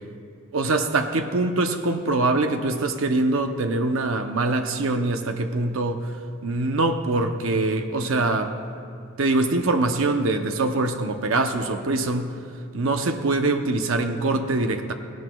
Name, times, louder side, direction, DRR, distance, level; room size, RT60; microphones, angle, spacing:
voice 1, 0.5-6.2 6.4-8.5 9.2-12.3 12.7-14.9, right 2 dB, 90° right, 6 dB, 0.7 m, -23 dB
17.5 x 17.0 x 2.3 m, 2.4 s
head